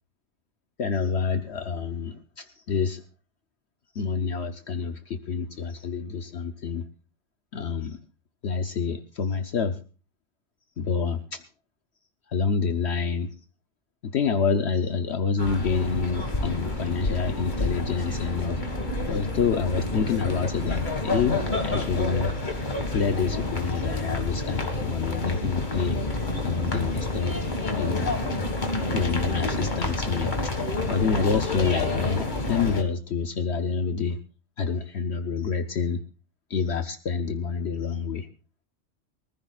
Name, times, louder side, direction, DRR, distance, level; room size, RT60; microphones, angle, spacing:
voice 1, 0.8-3.0 3.9-6.8 7.5-8.0 8.4-9.8 10.8-11.4 12.3-13.3 14.0-18.6 19.1-22.3 22.9-26.0 26.4-27.3 27.8-28.1 28.9-30.5 30.9-34.2 34.6-36.0 36.5-38.3, left 5 dB, 65° left, 7 dB, 1.1 m, -27 dB
sound 1, 15.4-32.8, left 2 dB, 40° left, 2.0 m, -29 dB
24.0 x 14.5 x 2.4 m, 0.36 s
omnidirectional pair, 1.3 m